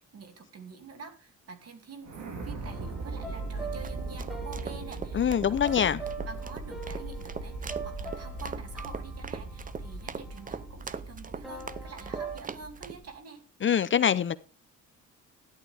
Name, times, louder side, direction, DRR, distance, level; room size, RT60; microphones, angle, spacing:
voice 1, 0.0-2.1 2.4-13.4, right 4 dB, 55° right, 2.7 m, -47 dB
sound 1, 2.0-13.1, right 2 dB, 75° right, 3.7 m, -39 dB
sound 2, 2.6-10.7 11.4-12.4, right 4 dB, ahead, 3.3 m, -43 dB
sound 3, 3.6-13.0, right 5 dB, 25° right, 0.7 m, -41 dB
voice 2, 5.1-6.0 13.6-14.4, left 8 dB, 40° left, 0.7 m, -24 dB
13.5 x 11.0 x 3.5 m
cardioid pair, 90°, 30 cm